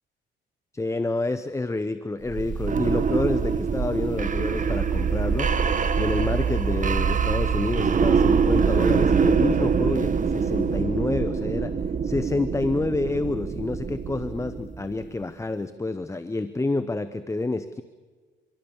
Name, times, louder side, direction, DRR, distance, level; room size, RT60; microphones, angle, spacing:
voice 1, 0.7-5.5 5.9-11.8 12.0-17.8, left 2 dB, 15° left, 12 dB, 0.9 m, -28 dB
sound 1, 2.3-15.0, right 6 dB, 40° right, 1.4 m, -24 dB
25.5 x 24.5 x 7.2 m, 1.5 s
cardioid pair, 90°, 20 cm